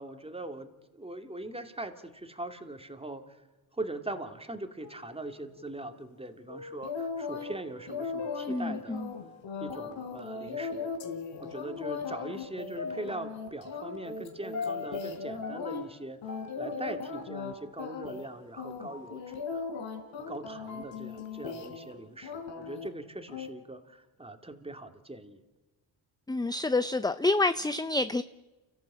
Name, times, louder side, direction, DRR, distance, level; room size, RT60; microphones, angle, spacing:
voice 1, 0.0-3.4 3.7-9.1 9.6-10.9 11.4-19.7 20.3-25.4, right 2 dB, 10° right, 7 dB, 2.6 m, -41 dB
sound 1, 4.8-9.4 9.9-10.0 11.0-20.0 20.4-22.3, left 5 dB, 35° left, 2.2 m, -44 dB
sound 2, 6.8-7.5 7.9-15.8 16.2-17.5 17.8-18.3 18.6-21.9 22.2-22.9 23.3-23.5, left 5 dB, 65° left, 4.4 m, -38 dB
voice 2, 8.5-9.1 26.3-28.2, left 2 dB, 10° left, 13 dB, 0.6 m, -28 dB
29.5 x 14.5 x 8.5 m, 1.2 s
supercardioid pair, 75°, 50 cm